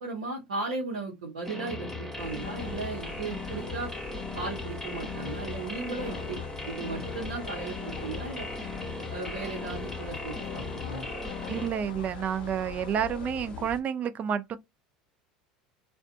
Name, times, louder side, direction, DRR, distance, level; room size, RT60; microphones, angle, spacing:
voice 1, 0.0-3.9 4.3-8.5 9.1-11.1, right 3 dB, 80° right, 0.9 m, -36 dB
sound 1, 1.4-11.7, left 2 dB, 5° left, 1.1 m, -38 dB
sound 2, 2.2-13.8, left 6 dB, 25° left, 0.8 m, -44 dB
sound 3, 2.4-13.7, left 9 dB, 75° left, 0.4 m, -46 dB
voice 2, 11.5-14.6, right 8 dB, 40° right, 0.4 m, -30 dB
2.5 x 2.2 x 2.4 m
hypercardioid pair, 75°, 4 cm